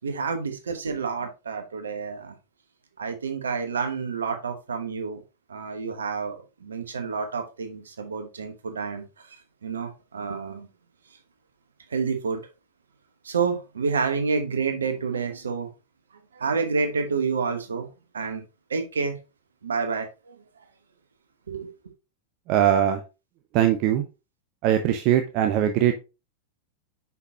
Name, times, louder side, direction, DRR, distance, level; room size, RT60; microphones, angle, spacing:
voice 1, 0.0-2.3 3.0-5.2 5.5-9.0 9.6-10.7 11.9-12.4 13.2-15.7 16.3-17.9 18.1-18.4 18.7-19.2 19.6-20.4 21.5-21.7, right 5 dB, 70° right, 1.1 m, -29 dB
voice 2, 22.5-23.0 23.5-24.0 24.6-25.9, right 11 dB, 40° right, 0.7 m, -21 dB
5.8 x 5.7 x 2.8 m
figure-of-eight pair, 90°, 0 cm